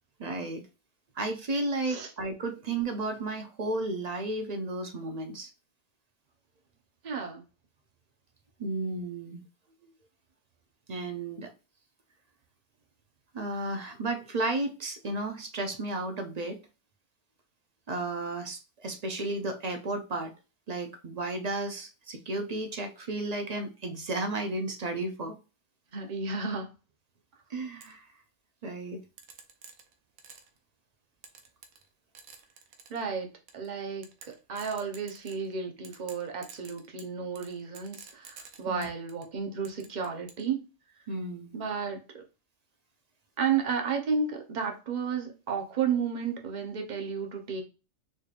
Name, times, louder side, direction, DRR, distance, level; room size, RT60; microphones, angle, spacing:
voice 1, 0.2-0.6 1.2-5.5 8.6-9.4 10.9-11.5 13.3-16.6 17.9-20.3 20.7-25.4 27.5-28.1 28.6-29.0 38.7-38.9 41.1-41.5, right 2 dB, 55° right, 0.4 m, -33 dB
voice 2, 7.0-7.4 25.9-26.7 32.9-33.3 33.5-40.6 41.5-42.2 43.4-47.6, right 6 dB, 40° right, 0.9 m, -32 dB
sound 1, 27.8-27.9 29.2-30.6 31.2-31.9 32.2-33.0 33.5-33.7 34.0-35.5 35.8-39.3 39.7-40.5, right 6 dB, 90° right, 1.2 m, -50 dB
4.3 x 3.2 x 2.4 m
omnidirectional pair, 1.4 m